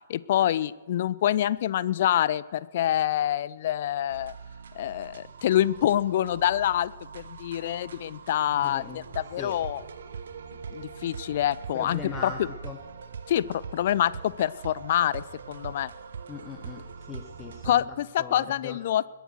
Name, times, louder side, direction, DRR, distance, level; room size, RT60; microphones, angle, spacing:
voice 1, 0.1-4.3 4.8-9.8 10.7-12.5 13.3-15.9 17.6-19.1, left 11 dB, 45° left, 20 dB, 0.4 m, -26 dB
sound 1, 4.1-17.8, right 6 dB, 60° right, 1.1 m, -42 dB
voice 2, 8.6-9.0 9.4-9.5 11.7-12.8 16.3-16.8 17.1-17.8 18.2-18.8, left 5 dB, 15° left, 4 dB, 1.0 m, -40 dB
21.0 x 8.2 x 6.3 m, 1.3 s
figure-of-eight pair, 120°, 0 cm